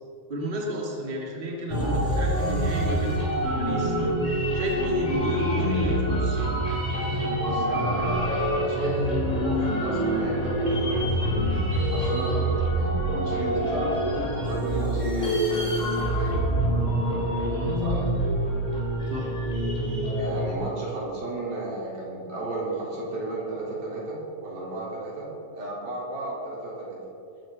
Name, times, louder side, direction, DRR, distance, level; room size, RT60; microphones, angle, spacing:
voice 1, 0.3-4.0 4.5-6.4 17.5-17.8 19.1-19.3, right 1 dB, 15° right, -3 dB, 2.4 m, -32 dB
sound 1, 1.7-20.5, right 1 dB, 15° left, 2.8 m, -26 dB
voice 2, 7.4-15.4 15.9-16.5 17.8-18.1 20.2-25.3 25.5-27.0, right 2 dB, 85° right, -6 dB, 6.0 m, -33 dB
21.0 x 12.5 x 4.1 m, 2.6 s
omnidirectional pair, 4.0 m